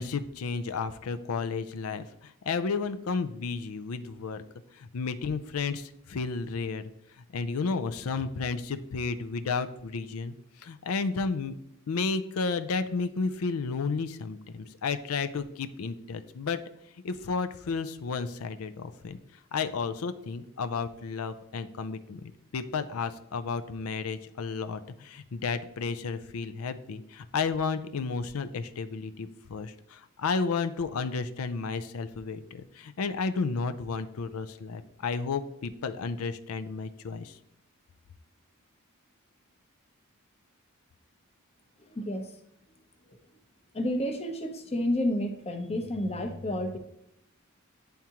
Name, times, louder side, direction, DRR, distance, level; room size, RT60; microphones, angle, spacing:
voice 1, 0.0-4.4 4.7-6.9 7.3-11.5 11.9-16.6 17.0-19.2 19.5-37.4, left 4 dB, 80° left, 11 dB, 0.5 m, -32 dB
voice 2, 41.9-42.3 43.7-46.8, left 1 dB, 30° left, 5 dB, 0.7 m, -30 dB
10.5 x 3.6 x 2.9 m, 0.79 s
head